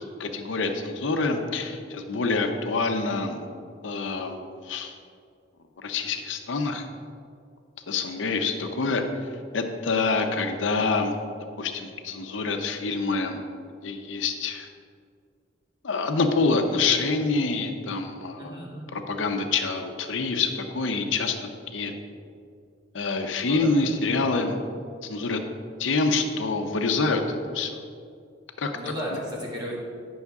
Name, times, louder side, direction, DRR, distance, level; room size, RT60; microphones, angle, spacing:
voice 1, 0.2-3.4 3.8-5.0 5.8-6.9 7.9-9.0 9.5-11.1 11.6-13.4 13.8-14.7 15.8-18.6 18.9-21.4 21.7-21.9 22.9-24.6 25.0-25.4 25.8-27.8 28.6-28.7, left 3 dB, 80° left, 6 dB, 0.6 m, -26 dB
voice 2, 18.4-18.9 23.4-23.7 28.7-29.8, equal, 25° right, -5 dB, 1.8 m, -34 dB
9.4 x 6.2 x 3.5 m, 2.3 s
head